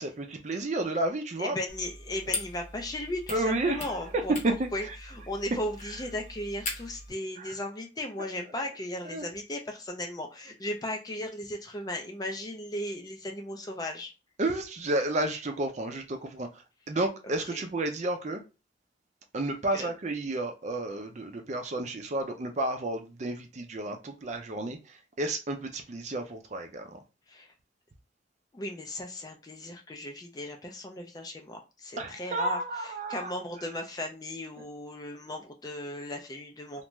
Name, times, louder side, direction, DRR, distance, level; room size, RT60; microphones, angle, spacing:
voice 1, 0.0-1.6 3.3-4.0 4.4-4.7 7.4-7.5 9.1-9.2 14.4-18.4 19.3-27.0 32.0-33.3, right 2 dB, 40° right, 0.5 m, -31 dB
voice 2, 1.4-4.4 4.7-14.1 17.4-17.7 19.7-19.9 27.3-27.5 28.5-36.9, left 1 dB, 20° left, 0.4 m, -36 dB
sound 1, 1.7-7.1, left 3 dB, 40° left, 0.8 m, -40 dB
2.5 x 2.2 x 3.0 m
head